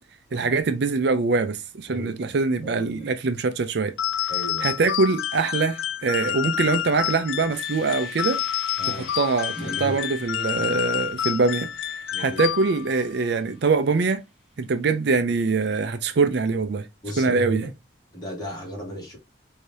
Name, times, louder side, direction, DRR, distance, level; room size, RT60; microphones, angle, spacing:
voice 1, 0.3-4.0 4.6-8.4 8.9-14.2 14.6-16.9 17.2-17.7, right 4 dB, 60° right, 0.4 m, -23 dB
voice 2, 1.9-2.3 2.6-3.1 4.3-4.7 8.8-9.1 9.6-10.0 12.1-12.4 17.0-17.7 18.1-19.2, equal, 20° left, 2.0 m, -35 dB
sound 1, 4.0-13.0, left 11 dB, 85° left, 0.4 m, -29 dB
sound 2, 7.5-14.3, left 1 dB, ahead, 2.5 m, -48 dB
4.7 x 2.8 x 2.7 m
head